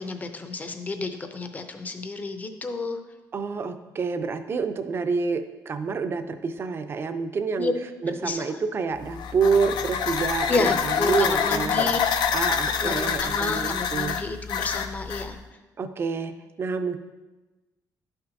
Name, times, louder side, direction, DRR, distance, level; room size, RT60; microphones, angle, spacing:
voice 1, 0.0-3.0 7.6-7.7 8.2-8.4 10.5-12.0 12.8-15.4, left 3 dB, 20° left, 7 dB, 0.5 m, -30 dB
voice 2, 3.3-7.7 8.0-11.9 12.3-14.1 15.8-17.0, right 5 dB, 35° right, 9 dB, 0.4 m, -28 dB
sound 1, 9.0-15.3, left 7 dB, 85° left, 0.5 m, -26 dB
11.5 x 5.8 x 2.6 m, 1.1 s
cardioid pair, 160°, 7 cm